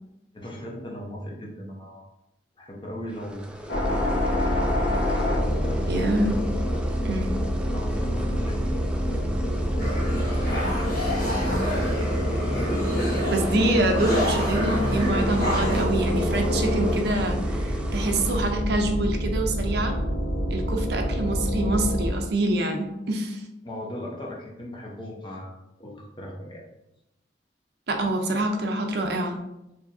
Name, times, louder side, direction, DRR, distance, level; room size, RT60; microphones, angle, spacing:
voice 1, 0.3-2.1 2.6-3.4 3.7-4.8 5.2-6.3 7.7-8.7 9.0-9.9 10.1-12.2 23.6-26.6, equal, 25° left, -1 dB, 0.7 m, -38 dB
sound 1, 3.1-18.5, right 1 dB, 5° right, 0.3 m, -39 dB
sound 2, 3.7-22.1, equal, 75° left, 1.2 m, -26 dB
voice 2, 5.9-6.4 7.0-7.4 13.3-20.0 20.5-23.4 27.9-29.4, right 1 dB, 65° right, 4 dB, 0.5 m, -26 dB
sound 3, 9.8-15.9, left 1 dB, 55° left, 1.4 m, -29 dB
4.7 x 2.8 x 2.6 m, 0.89 s
head